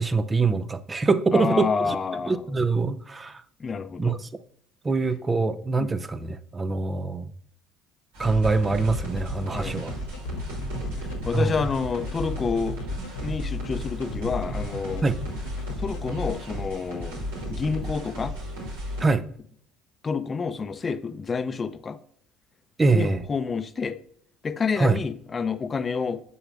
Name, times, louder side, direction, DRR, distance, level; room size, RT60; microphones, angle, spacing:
voice 1, 0.0-2.0 2.3-3.4 4.0-4.3 4.8-7.3 8.2-9.9 11.3-11.5 15.0-15.2 19.0-19.2 22.8-23.2 24.8-25.0, right 3 dB, 25° right, 0.6 m, -24 dB
voice 2, 1.3-2.4 3.6-4.2 5.8-6.0 9.5-9.9 10.3-10.5 11.2-12.8 13.2-15.0 15.8-17.2 17.5-18.3 20.0-22.0 22.9-24.0 24.4-26.2, left 5 dB, 30° left, 0.7 m, -28 dB
sound 1, 8.1-19.1, equal, 85° right, 2.9 m, -34 dB
sound 2, 8.4-16.1, left 1 dB, 80° left, 0.8 m, -37 dB
7.2 x 6.8 x 2.5 m
hypercardioid pair, 70°, 0 cm